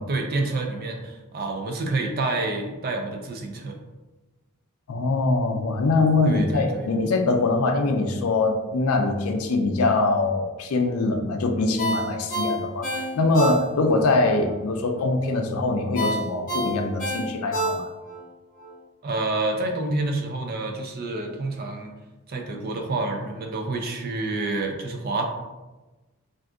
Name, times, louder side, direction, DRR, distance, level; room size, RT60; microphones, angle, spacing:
voice 1, 0.1-3.8 6.2-6.9 19.0-21.9 22.3-25.2, right 2 dB, 45° right, 3 dB, 0.4 m, -28 dB
voice 2, 4.9-17.9, left 3 dB, 75° left, 4 dB, 0.4 m, -23 dB
Ringtone, 11.8-14.0 14.4-14.5 16.0-18.2 18.6-18.7, equal, 40° left, 0.7 m, -28 dB
2.5 x 2.4 x 3.5 m, 1.1 s
head